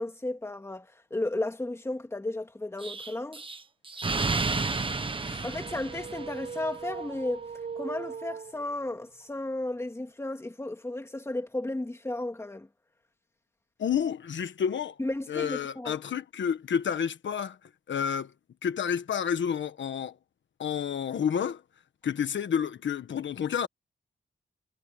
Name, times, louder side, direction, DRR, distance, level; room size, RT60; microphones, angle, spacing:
voice 1, 0.0-3.4 4.1-4.7 5.4-7.5 7.8-12.7 15.0-16.0, left 2 dB, 15° left, 2.3 m, -34 dB
Explosion, 2.8-6.7, right 3 dB, 30° right, 1.2 m, -31 dB
voice 2, 5.2-5.5 13.8-15.0 15.3-17.6 17.9-18.3 18.6-20.2 20.6-21.6 22.0-23.7, left 8 dB, 90° left, 1.3 m, -30 dB
sound 1, 5.5-9.1, right 6 dB, 45° right, 7.8 m, -40 dB
wide cardioid pair, 170°, 19 cm